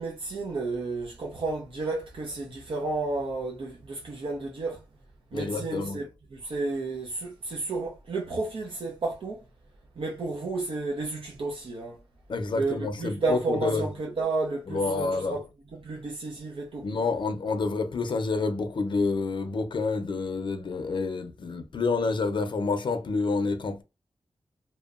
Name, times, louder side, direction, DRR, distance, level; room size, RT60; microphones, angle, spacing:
voice 1, 0.0-4.8 5.3-6.1 6.3-9.4 10.0-12.0 12.5-15.4 15.8-16.9, right 3 dB, 70° right, 0.6 m, -31 dB
voice 2, 5.3-6.0 12.3-13.9 14.7-15.4 16.8-23.8, left 3 dB, 60° left, 0.5 m, -28 dB
2.8 x 2.0 x 2.4 m
wide cardioid pair, 135°, 9 cm